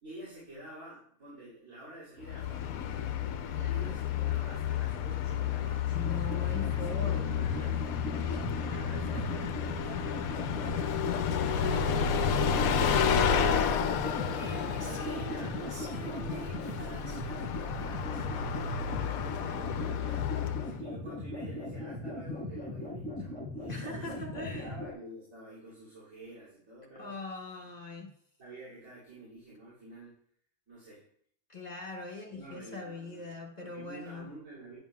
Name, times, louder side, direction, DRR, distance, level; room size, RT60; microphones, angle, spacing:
voice 1, 0.0-3.0 3.6-6.4 6.7-7.8 8.2-14.5 14.8-27.1 28.4-30.2 30.7-31.1 32.3-33.3 33.6-34.8, right 1 dB, 60° right, -10 dB, 3.2 m, -49 dB
Bus, 2.2-20.8, left 7 dB, 75° left, 1.0 m, -31 dB
voice 2, 3.5-4.0 5.9-7.8 23.7-24.7 26.9-28.1 31.5-34.3, left 3 dB, 30° left, 0 dB, 1.2 m, -41 dB
sound 1, 5.9-24.9, left 1 dB, 5° left, 1.4 m, -39 dB
Female singing, 11.5-18.9, right 4 dB, 80° right, 1.7 m, -48 dB
9.9 x 7.1 x 2.3 m, 0.63 s
omnidirectional pair, 1.6 m